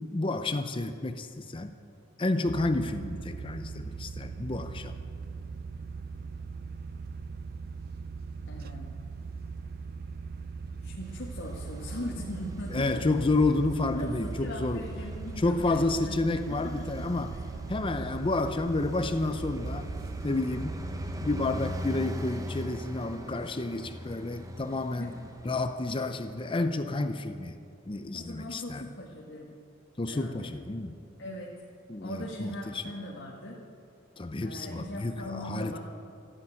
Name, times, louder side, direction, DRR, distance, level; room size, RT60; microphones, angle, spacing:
voice 1, 0.0-1.8 2.2-4.9 12.7-14.8 15.4-17.3 17.7-19.9 20.2-20.8 21.2-25.1 25.4-27.6 27.9-28.8 30.0-30.9 31.9-32.8 34.2-35.8, left 2 dB, 25° left, 9 dB, 0.6 m, -30 dB
sound 1, 2.4-22.0, right 4 dB, 50° right, 0.4 m, -40 dB
voice 2, 8.5-8.9 10.8-13.0 13.9-15.8 16.1-16.2 16.5-17.4 25.0-25.1 28.1-29.6 30.1-30.5 31.2-31.5 32.0-33.6 34.4-35.8, left 1 dB, 60° left, -4 dB, 1.8 m, -40 dB
Traffic noise roadway noise, 11.0-26.5, equal, 15° right, 0.9 m, -41 dB
14.0 x 10.0 x 9.1 m, 2.5 s
head